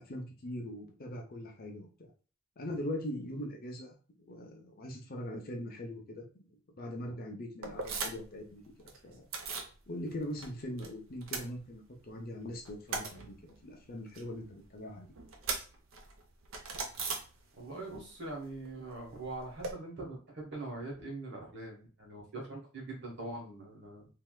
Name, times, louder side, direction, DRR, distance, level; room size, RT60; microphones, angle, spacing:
voice 1, 0.0-2.1 2.6-8.6 9.0-9.3 9.9-13.3 13.6-15.1, left 1 dB, 50° left, 1 dB, 0.7 m, -41 dB
sound 1, 7.6-8.4 8.6-9.7 10.1-10.9 11.1-12.1 12.5-17.8 18.1-19.7, right 4 dB, 85° right, 0.7 m, -40 dB
voice 2, 17.6-24.1, right 2 dB, 60° right, -1 dB, 1.3 m, -42 dB
3.3 x 2.7 x 2.3 m, 0.36 s
head